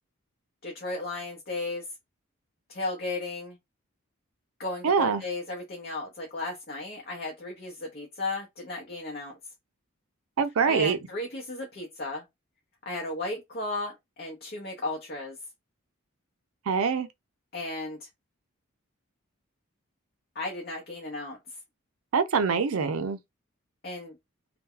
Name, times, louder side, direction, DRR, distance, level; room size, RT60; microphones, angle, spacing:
voice 1, 0.6-1.8 2.7-3.6 4.6-9.4 10.6-12.2 12.9-15.4 17.5-18.1 20.3-21.4 23.8-24.1, left 2 dB, 45° left, 0.8 m, -35 dB
voice 2, 4.8-5.2 10.4-11.0 16.7-17.1 22.1-23.2, right 5 dB, 80° right, 0.5 m, -24 dB
2.7 x 2.3 x 3.7 m
head